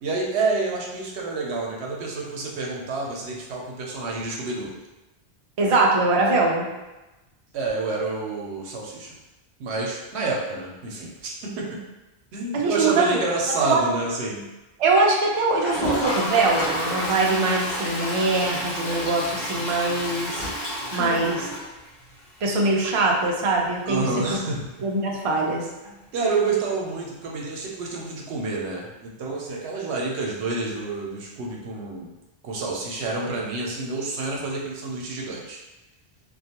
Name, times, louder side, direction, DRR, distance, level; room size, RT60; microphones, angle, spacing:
voice 1, 0.0-4.7 7.5-9.1 9.6-11.7 12.3-14.4 21.0-21.3 23.8-24.9 25.8-32.1 32.4-35.6, right 3 dB, 90° right, -2 dB, 0.9 m, -28 dB
voice 2, 5.6-6.7 12.5-13.2 13.6-13.8 14.8-20.5 20.9-21.4 22.4-24.0 24.3-24.4 24.8-25.7, right 3 dB, 55° right, -1 dB, 0.4 m, -22 dB
Toilet flush, 15.5-22.2 22.5-22.6 22.8-22.9 23.2-23.3 25.8-25.9 27.2-27.3, equal, 50° left, 0.8 m, -29 dB
2.4 x 2.2 x 2.8 m, 1.0 s
omnidirectional pair, 1.1 m